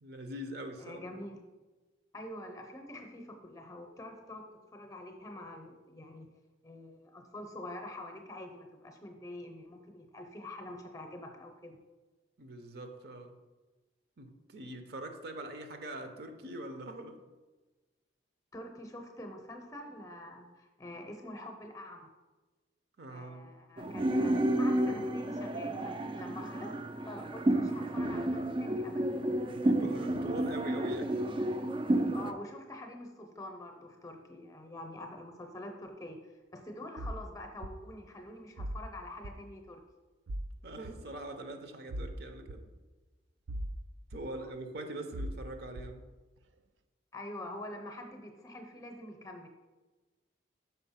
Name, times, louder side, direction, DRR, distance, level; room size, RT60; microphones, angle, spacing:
voice 1, 0.0-1.0 12.4-13.3 14.2-17.2 23.0-23.5 29.5-31.2 40.6-42.6 44.1-46.0, right 1 dB, 60° right, 6 dB, 0.7 m, -43 dB
voice 2, 0.8-1.4 2.1-4.5 4.7-6.3 6.6-11.8 18.5-22.1 23.1-26.7 27.0-29.1 32.1-36.2 36.5-39.8 44.3-44.5 47.1-49.5, left 1 dB, 20° left, 4 dB, 0.7 m, -46 dB
sound 1, 23.8-32.3, right 1 dB, 30° right, 0.4 m, -31 dB
sound 2, 37.0-37.2 37.6-37.7 38.6-38.8 39.2-39.4 40.3-40.5 40.8-40.9 41.9-42.1 42.5-42.6 43.5-43.8 44.1-44.2 45.1-45.4 45.8-45.9, right 1 dB, 85° right, 0.5 m, -38 dB
5.6 x 4.4 x 5.7 m, 1.2 s
head